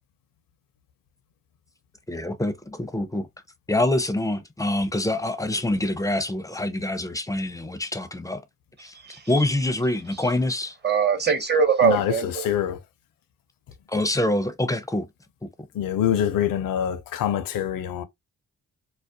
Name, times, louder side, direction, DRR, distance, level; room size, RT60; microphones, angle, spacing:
voice 1, 2.1-3.3 3.7-8.4 8.8-8.9 9.3-10.8 13.9-15.1, left 1 dB, 10° left, 0.4 m, -25 dB
voice 2, 8.9-9.4 10.2-10.3 10.8-12.5, right 6 dB, 30° right, 0.8 m, -23 dB
voice 3, 11.8-12.1 12.4-12.8 15.8-18.0, left 10 dB, 75° left, 0.5 m, -24 dB
2.4 x 2.0 x 2.6 m
cardioid pair, 60°, 34 cm